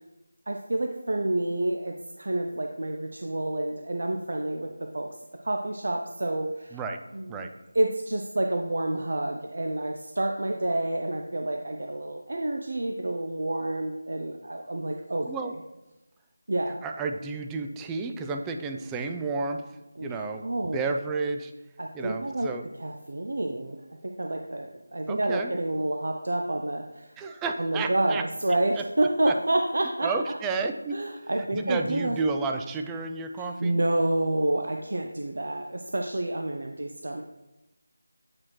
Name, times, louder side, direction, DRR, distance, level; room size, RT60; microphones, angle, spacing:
voice 1, 0.5-5.1 5.4-6.8 7.1-7.5 7.7-15.3 16.5-16.8 20.0-20.9 21.8-22.5 22.7-27.2 27.6-30.1 30.9-32.2 33.4-37.2, right 1 dB, 65° right, 3 dB, 0.5 m, -29 dB
voice 2, 16.8-19.6 20.0-20.5 20.7-21.5 21.9-22.6 25.1-25.5 27.2-28.2 29.3-29.4 30.0-31.0 31.5-33.7, right 4 dB, 10° right, 4 dB, 0.3 m, -31 dB
8.6 x 4.2 x 3.1 m, 1.0 s
figure-of-eight pair, 170°, 0 cm